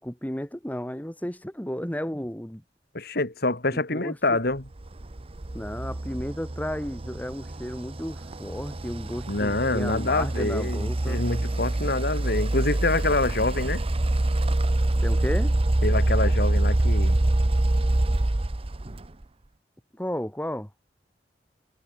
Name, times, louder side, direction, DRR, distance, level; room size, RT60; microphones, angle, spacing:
voice 1, 0.0-2.6 3.7-4.4 5.5-11.2 15.0-15.6 19.9-20.7, equal, 10° left, 1.9 m, -33 dB
voice 2, 2.9-4.6 9.3-13.8 15.8-17.2, left 2 dB, 60° left, 2.8 m, -26 dB
sound 1, 4.8-19.2, right 1 dB, 35° right, 0.8 m, -25 dB
head